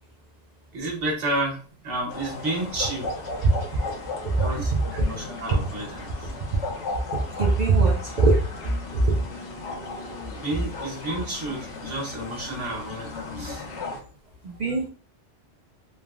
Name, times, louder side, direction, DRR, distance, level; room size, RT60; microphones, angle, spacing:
voice 1, 0.7-1.6 1.8-3.1 4.4-6.3 10.3-13.6, right 1 dB, 80° right, -1 dB, 1.3 m, -31 dB
sound 1, 2.1-14.0, left 3 dB, 75° left, 1.0 m, -36 dB
voice 2, 7.1-8.4 9.1-9.2 14.4-14.9, right 3 dB, 60° right, -1 dB, 0.4 m, -21 dB
3.3 x 2.0 x 2.3 m, 0.39 s
omnidirectional pair, 1.2 m